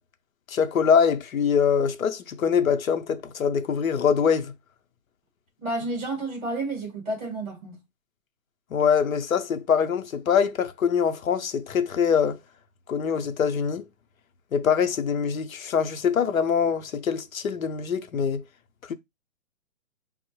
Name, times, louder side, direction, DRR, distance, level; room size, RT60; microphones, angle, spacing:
voice 1, 0.5-4.5 8.7-12.4 12.9-13.8 14.5-18.4 18.9-19.0, left 7 dB, 90° left, 0.7 m, -23 dB
voice 2, 5.6-7.7, right 2 dB, 15° right, 1.4 m, -30 dB
5.3 x 2.0 x 3.0 m
hypercardioid pair, 155°, 40 cm